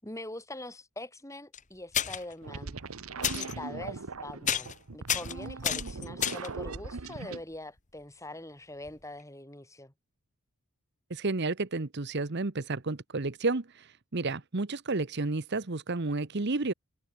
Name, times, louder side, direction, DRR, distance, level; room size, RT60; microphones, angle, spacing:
voice 1, 0.0-2.8 3.3-9.9, left 1 dB, 15° left, 7.0 m, -43 dB
sound 1, 1.5-1.6 1.9-2.3 3.2-3.5 4.0-4.2 4.5-4.8 5.1-6.6 8.9-9.0 9.2-9.3, left 9 dB, 35° left, 1.5 m, -30 dB
sound 2, 2.4-7.4, right 3 dB, 80° right, 1.1 m, -39 dB
voice 2, 11.1-13.7 14.1-16.7, right 3 dB, 50° right, 1.0 m, -31 dB
head